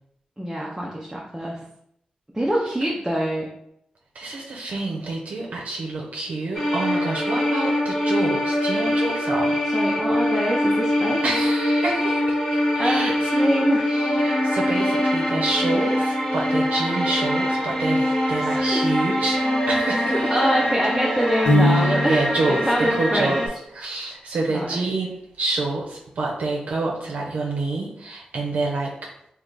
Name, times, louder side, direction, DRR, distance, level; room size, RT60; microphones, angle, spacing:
voice 1, 0.4-1.7 2.3-3.5 9.7-11.2 12.8-13.9 18.5-18.9 20.1-23.4 24.5-24.9, equal, 10° right, -3 dB, 0.5 m, -25 dB
voice 2, 4.1-9.6 11.2-13.3 13.9-20.2 21.7-23.4 23.7-28.9, right 3 dB, 75° right, -2 dB, 0.6 m, -28 dB
sound 1, 6.5-23.5, left 1 dB, 20° left, 1.1 m, -23 dB
Piano, 21.5-22.4, left 1 dB, 90° left, 0.9 m, -19 dB
3.3 x 2.4 x 3.7 m, 0.75 s
wide cardioid pair, 105°, 3 cm